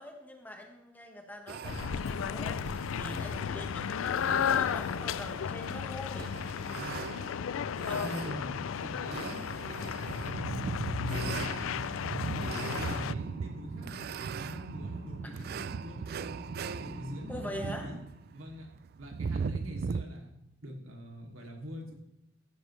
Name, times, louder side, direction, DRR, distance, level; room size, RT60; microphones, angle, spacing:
voice 1, 0.0-6.3 7.4-7.5 7.9-8.5 17.3-17.9, equal, 10° left, 2 dB, 1.4 m, -43 dB
sound 1, 1.5-20.0, right 5 dB, 50° right, 0.3 m, -39 dB
sound 2, 1.6-13.1, left 8 dB, 75° left, 0.4 m, -34 dB
voice 2, 6.6-7.0 7.8-10.6 11.1-14.0 14.3-16.0 16.6-18.0 18.3-18.7 19.0-20.3 20.6-21.9, equal, 80° right, 0 dB, 2.7 m, -44 dB
sound 3, 12.2-18.0, equal, 45° left, 2.6 m, -47 dB
14.5 x 10.5 x 3.2 m, 0.83 s
head